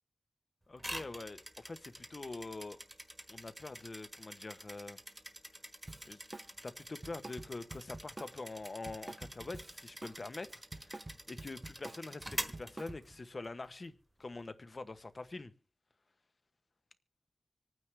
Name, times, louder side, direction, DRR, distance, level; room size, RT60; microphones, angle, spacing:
voice 1, 0.7-2.8 3.3-5.0 6.0-6.2 6.6-13.9 14.2-15.5, left 3 dB, 45° left, 1.1 m, -45 dB
sound 1, 0.8-13.5, right 1 dB, 15° right, 1.3 m, -47 dB
Drum kit, 5.9-6.5 6.8-10.2 10.5-13.2, right 2 dB, 35° right, 0.6 m, -48 dB
26.5 x 9.3 x 3.4 m
wide cardioid pair, 90°, 0 cm